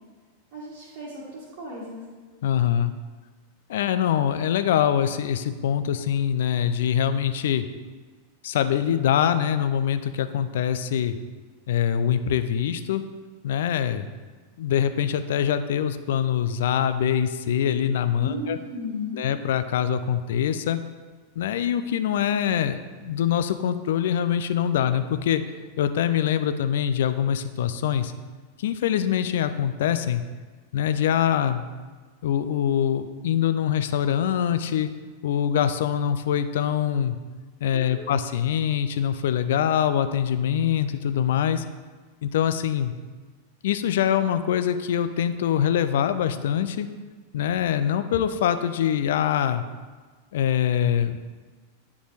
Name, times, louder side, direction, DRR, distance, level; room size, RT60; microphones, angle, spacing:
voice 1, 0.5-2.0 18.2-19.3 37.7-38.3, left 1 dB, 50° right, -7 dB, 1.5 m, -35 dB
voice 2, 2.4-2.9 3.7-7.7 8.4-11.2 11.7-13.0 13.4-14.1 14.6-18.6 19.2-20.8 21.4-25.4 25.8-28.1 28.6-30.2 30.7-31.6 32.2-34.9 35.2-37.2 37.6-41.6 42.2-42.9 43.6-46.9 47.3-49.6 50.3-51.2, left 9 dB, 55° left, 11 dB, 0.4 m, -24 dB
9.2 x 5.0 x 3.3 m, 1.4 s
figure-of-eight pair, 90°, 0 cm